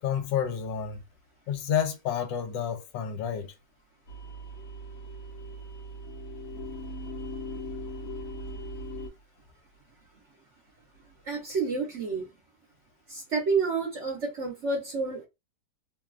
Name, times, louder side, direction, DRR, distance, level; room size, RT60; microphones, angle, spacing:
voice 1, 0.0-1.0 1.5-3.5, left 8 dB, 80° left, 1.3 m, -30 dB
sound 1, 4.1-9.1, equal, 60° left, 1.2 m, -39 dB
voice 2, 11.2-12.3 13.1-15.3, right 4 dB, 50° right, 0.9 m, -29 dB
3.1 x 2.2 x 2.3 m
omnidirectional pair, 2.0 m